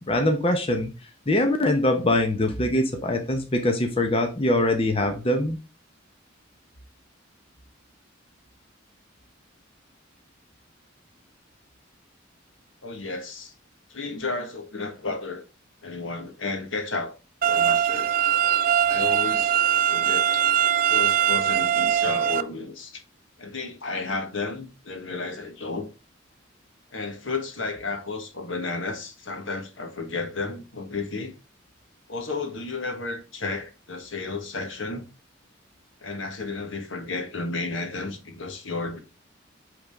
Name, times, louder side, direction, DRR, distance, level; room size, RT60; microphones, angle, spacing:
voice 1, 0.1-0.9 1.3-5.6, left 1 dB, 30° left, 0.8 m, -23 dB
voice 2, 12.8-13.5 13.9-15.4 15.8-17.2 17.4-18.1 18.8-20.4 20.9-23.0 23.4-25.9 26.9-31.3 32.1-35.1 36.0-39.0, left 3 dB, 70° left, 1.5 m, -32 dB
sound 1, 17.4-22.4, right 9 dB, 45° right, 0.4 m, -22 dB
8.5 x 3.8 x 3.6 m
head